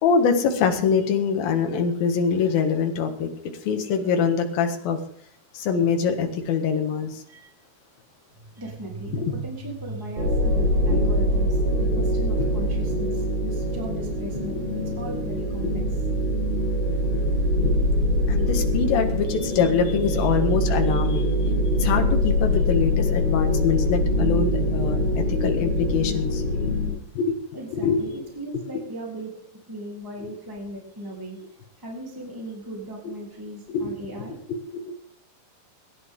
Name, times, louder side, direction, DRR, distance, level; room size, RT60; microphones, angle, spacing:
voice 1, 0.0-3.3 3.6-5.0 5.5-7.2 9.1-9.3 16.6-17.3 17.6-17.8 18.2-21.4 21.8-26.7 27.1-27.4 27.7-28.2 33.7-33.9, left 6 dB, 70° left, 5 dB, 3.4 m, -24 dB
sound 1, 8.3-16.7, right 3 dB, 20° left, 3.7 m, -42 dB
voice 2, 8.6-15.8 27.5-29.3 29.7-34.4, right 1 dB, 5° right, -2 dB, 3.0 m, -38 dB
sound 2, 10.2-26.9, left 1 dB, 70° right, 6.7 m, -23 dB
23.0 x 11.0 x 3.8 m, 0.65 s
omnidirectional pair, 4.6 m